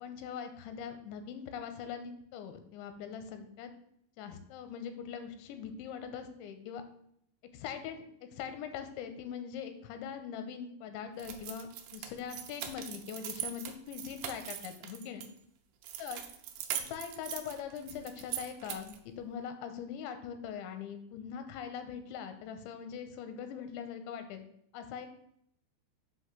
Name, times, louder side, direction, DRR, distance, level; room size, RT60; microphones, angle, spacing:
voice 1, 0.0-3.7 4.2-6.8 7.5-15.3 16.0-16.2 16.7-24.4 24.7-25.1, left 7 dB, 85° left, 8 dB, 3.0 m, -42 dB
sound 1, 11.2-15.3 15.8-19.0, right 10 dB, 90° right, 2.1 m, -41 dB
7.8 x 2.9 x 5.9 m, 0.71 s
omnidirectional pair, 5.1 m